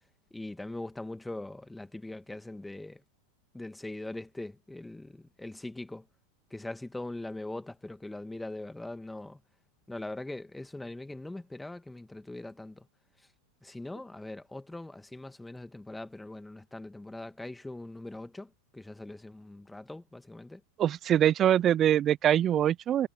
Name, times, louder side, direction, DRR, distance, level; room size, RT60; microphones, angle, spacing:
voice 1, 0.3-3.0 3.5-6.1 6.5-9.4 9.9-12.9 13.2-13.3 13.6-20.6, left 2 dB, 5° left, 2.1 m, -41 dB
voice 2, 20.8-23.1, right 10 dB, 35° right, 0.4 m, -23 dB
figure-of-eight pair, 90°, 0 cm